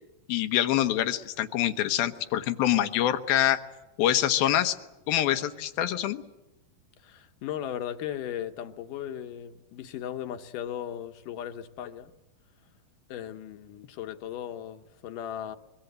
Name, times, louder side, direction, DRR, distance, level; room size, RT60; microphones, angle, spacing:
voice 1, 0.3-3.6 4.0-4.8 5.1-6.2, left 12 dB, 90° left, 3.0 m, -25 dB
voice 2, 7.0-12.1 13.1-15.6, left 10 dB, 70° left, 2.4 m, -37 dB
25.0 x 23.0 x 8.0 m
omnidirectional pair, 4.1 m